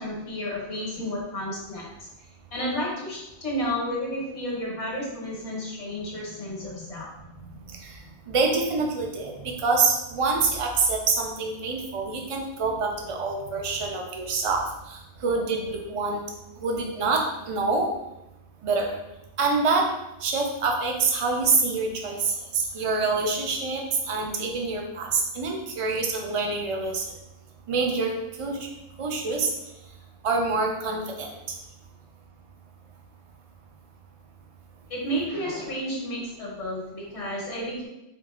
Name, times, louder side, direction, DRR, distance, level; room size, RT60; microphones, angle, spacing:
voice 1, 0.0-2.1 2.5-7.1 7.4-7.6 34.9-37.9, equal, 75° left, -4 dB, 1.4 m, -32 dB
voice 2, 8.3-16.2 16.6-17.9 18.6-19.0 19.4-19.9 20.2-27.0 27.7-28.1 28.4-28.7 29.0-29.5 30.2-31.3, right 4 dB, 45° right, 1 dB, 0.4 m, -26 dB
3.8 x 3.6 x 2.4 m, 0.92 s
omnidirectional pair, 1.2 m